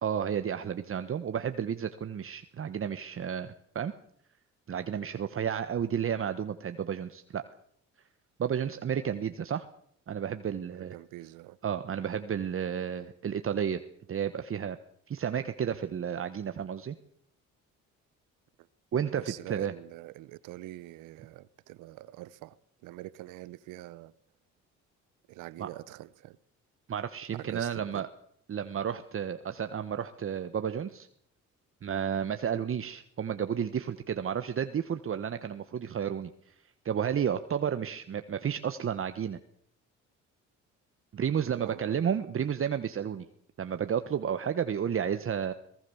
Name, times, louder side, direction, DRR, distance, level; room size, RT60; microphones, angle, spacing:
voice 1, 0.0-3.9 4.7-7.4 8.4-9.7 10.1-10.9 11.6-13.8 14.1-14.8 15.1-17.0 18.9-19.7 25.6-25.7 26.9-28.1 28.5-31.1 31.8-36.5 36.8-39.4 41.1-43.2 43.6-45.5, right 8 dB, 45° right, 1.2 m, -32 dB
voice 2, 10.7-11.6 19.1-22.6 22.8-24.1 25.3-26.4 27.3-28.1 41.5-42.0, right 16 dB, 85° right, 1.0 m, -44 dB
22.5 x 19.0 x 7.1 m
supercardioid pair, 80°, 30 cm